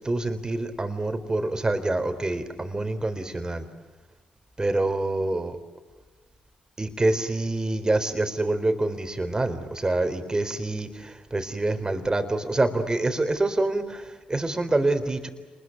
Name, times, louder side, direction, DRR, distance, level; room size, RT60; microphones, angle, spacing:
voice 1, 0.0-3.7 4.6-5.6 6.8-15.3, right 2 dB, 20° right, 8 dB, 4.0 m, -26 dB
28.0 x 21.0 x 7.9 m, 1.3 s
supercardioid pair, 55°, 3 cm